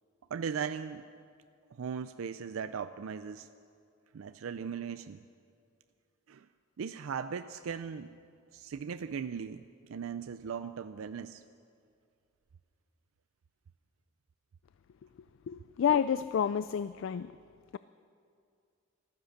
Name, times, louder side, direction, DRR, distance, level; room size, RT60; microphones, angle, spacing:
voice 1, 0.3-1.1 1.7-3.5 4.1-5.2 6.3-6.5 6.8-8.2 8.5-11.4, right 6 dB, 85° right, 11 dB, 0.4 m, -38 dB
voice 2, 15.5-17.3, left 8 dB, 65° left, 14 dB, 0.3 m, -29 dB
15.0 x 13.0 x 6.6 m, 2.3 s
head